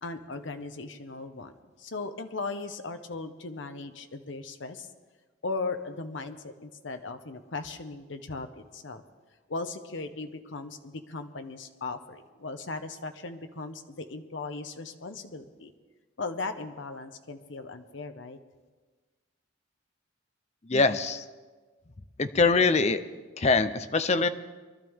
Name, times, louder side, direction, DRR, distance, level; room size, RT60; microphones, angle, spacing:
voice 1, 0.0-4.9 5.4-9.0 9.5-15.7 16.2-18.4, left 3 dB, 70° left, 7 dB, 0.9 m, -38 dB
voice 2, 20.7-21.2 22.2-23.0 23.4-24.3, left 4 dB, 35° left, 11 dB, 0.6 m, -23 dB
23.0 x 12.5 x 3.6 m, 1.4 s
head